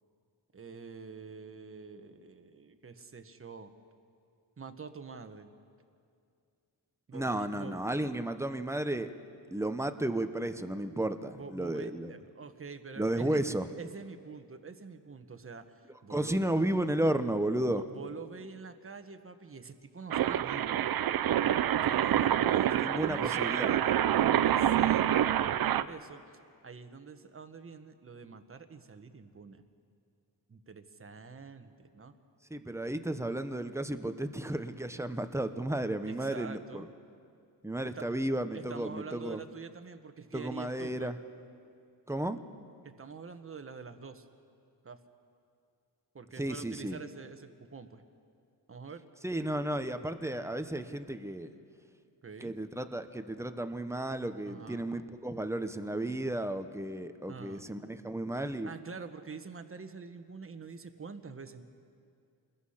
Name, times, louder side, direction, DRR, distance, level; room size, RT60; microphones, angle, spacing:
voice 1, 0.5-3.7 4.6-5.5 7.1-7.8 11.3-16.4 17.7-20.8 21.7-23.8 24.1-25.2 25.6-29.6 30.5-32.1 36.1-36.9 37.9-38.1 38.5-41.1 42.8-44.3 44.8-45.0 46.1-48.0 48.7-49.0 52.2-52.5 54.4-55.0 57.3-57.7 58.3-61.6, right 5 dB, 30° right, 9 dB, 1.3 m, -46 dB
voice 2, 7.1-9.1 9.5-12.1 13.0-13.7 16.1-17.8 22.7-23.7 32.5-36.8 37.6-39.4 40.3-41.1 42.1-42.4 46.4-47.0 49.2-51.5 52.4-58.7, right 1 dB, 5° right, 9 dB, 0.9 m, -33 dB
sound 1, 20.1-25.8, right 11 dB, 55° right, 0.6 m, -27 dB
28.0 x 21.0 x 5.8 m, 2.4 s
cardioid pair, 115°, 42 cm